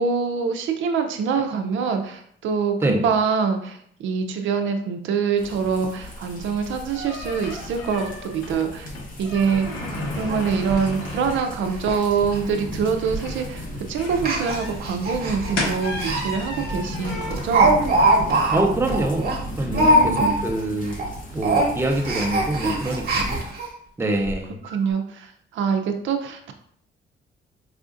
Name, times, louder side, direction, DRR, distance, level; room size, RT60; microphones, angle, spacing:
voice 1, 0.0-8.9 9.2-9.7 10.2-17.7 19.7-20.4 24.6-26.5, right 6 dB, 75° right, 6 dB, 0.5 m, -25 dB
sound 1, 5.4-23.4, equal, 45° left, 1.0 m, -36 dB
sound 2, 6.0-19.8, left 1 dB, 85° left, 1.0 m, -35 dB
Speech, 9.4-9.5 9.8-9.9 10.3-10.4 10.7-10.9 11.3-11.5 11.7-12.0 12.3-12.4 13.1-13.4 14.1-16.2 16.6-16.7 17.0-20.6 20.9-21.1 21.4-23.7 24.3-24.4 24.6-24.7, right 1 dB, 50° right, 1.0 m, -22 dB
voice 2, 18.5-21.0 21.3-23.4 24.0-24.6, right 1 dB, 10° right, 1 dB, 0.6 m, -25 dB
4.8 x 2.4 x 2.5 m, 0.65 s
cardioid pair, 90°, 20 cm